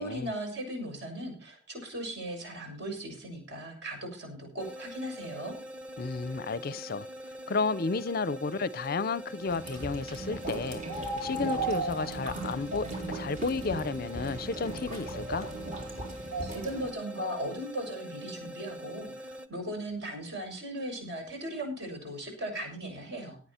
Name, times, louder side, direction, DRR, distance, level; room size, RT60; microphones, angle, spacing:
voice 1, 0.0-5.5 16.4-23.4, right 1 dB, 55° right, 6.9 m, -37 dB
sound 1, 4.6-19.5, equal, 5° right, 1.1 m, -44 dB
voice 2, 6.0-7.1 7.5-10.8 11.2-15.5, left 4 dB, 45° left, 0.5 m, -32 dB
sound 2, 9.5-16.9, right 2 dB, 40° right, 4.0 m, -37 dB
18.0 x 9.4 x 4.3 m
head